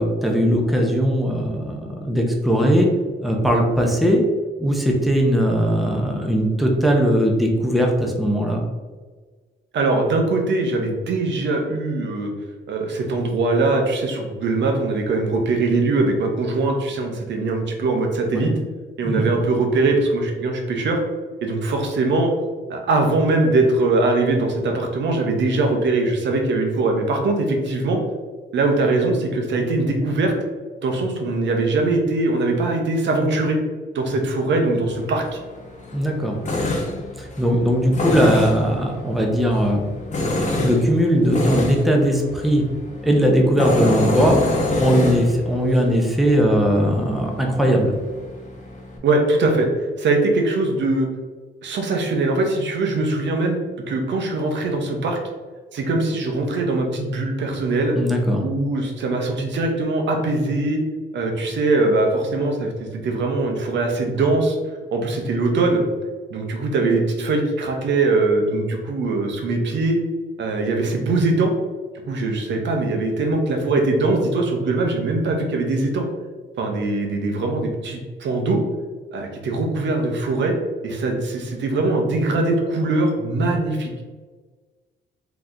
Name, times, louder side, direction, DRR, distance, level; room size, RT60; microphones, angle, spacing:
voice 1, 0.0-2.9 3.2-4.2 4.6-8.6 18.3-18.5 19.0-19.3 35.9-36.4 37.2-39.9 40.6-42.6 43.0-44.4 44.8-47.9 57.9-58.5, equal, ahead, 0 dB, 0.7 m, -19 dB
voice 2, 9.7-12.3 12.7-18.5 19.0-21.0 21.4-22.3 22.7-28.0 28.5-30.3 30.8-33.6 33.9-35.4 49.0-51.1 51.6-53.6 53.9-55.2 55.7-57.9 58.4-60.8 61.1-64.6 64.9-65.8 66.3-70.0 70.4-71.5 72.1-76.0 76.6-78.6 79.1-80.5 80.8-84.0, right 2 dB, 65° right, 3 dB, 0.8 m, -21 dB
Tools, 34.9-49.0, left 2 dB, 35° left, 0.9 m, -26 dB
3.9 x 3.0 x 3.8 m, 1.4 s
cardioid pair, 90°, 20 cm